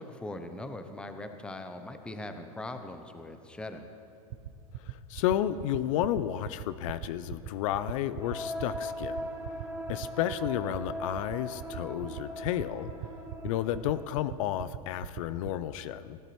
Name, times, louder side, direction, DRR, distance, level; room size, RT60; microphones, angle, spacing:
voice 1, 0.0-3.9, left 2 dB, 5° left, 7 dB, 0.6 m, -40 dB
sound 1, 4.3-15.6, right 13 dB, 60° right, 0.6 m, -39 dB
voice 2, 4.8-9.3 9.9-12.9 13.4-16.2, left 12 dB, 60° left, 14 dB, 0.4 m, -32 dB
sound 2, 8.2-14.0, equal, 15° right, 1.5 m, -39 dB
16.5 x 8.8 x 3.1 m, 2.5 s
hypercardioid pair, 120°, 19 cm